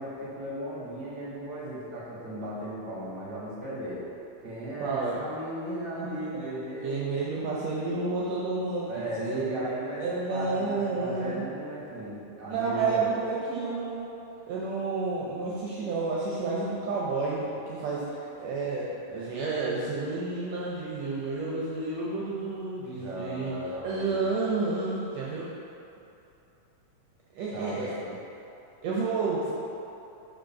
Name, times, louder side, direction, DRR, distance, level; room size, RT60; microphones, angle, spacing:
voice 1, 0.0-4.0 4.4-7.1 8.9-13.1 23.0-24.2 27.5-28.1, right 1 dB, 40° right, -6 dB, 1.8 m, -36 dB
voice 2, 4.8-5.2 6.0-6.5 6.8-9.6 10.0-11.5 12.5-14.1 14.5-23.5 23.8-25.5 27.4-28.0 28.8-29.5, right 3 dB, 75° right, -5 dB, 1.8 m, -30 dB
5.2 x 4.7 x 5.7 m, 2.8 s
omnidirectional pair, 3.3 m